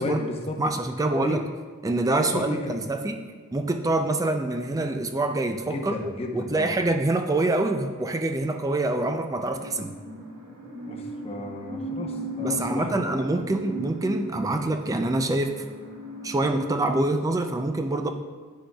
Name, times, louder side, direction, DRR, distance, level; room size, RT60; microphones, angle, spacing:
voice 1, 0.0-0.6 1.2-1.4 2.2-2.8 5.7-6.8 10.8-12.9 13.3-13.4, left 1 dB, 30° left, 1 dB, 0.7 m, -33 dB
voice 2, 0.6-1.4 1.8-3.2 3.5-9.9 12.4-15.7 16.2-18.1, right 2 dB, 15° right, 6 dB, 0.3 m, -26 dB
sound 1, 9.4-17.0, equal, 65° right, 2.0 m, -37 dB
9.6 x 6.3 x 2.3 m, 1.5 s
head